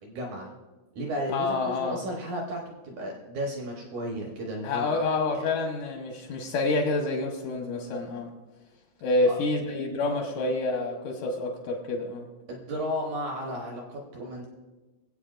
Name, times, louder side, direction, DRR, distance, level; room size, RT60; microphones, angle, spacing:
voice 1, 0.0-0.5 0.9-4.9 5.3-5.5 9.3-9.4 10.4-10.5 12.5-14.5, equal, 70° right, 0 dB, 1.9 m, -34 dB
voice 2, 1.3-2.0 4.6-8.3 9.0-12.3, left 3 dB, 80° left, 2 dB, 1.9 m, -28 dB
22.5 x 8.2 x 2.5 m, 1.2 s
omnidirectional pair, 5.0 m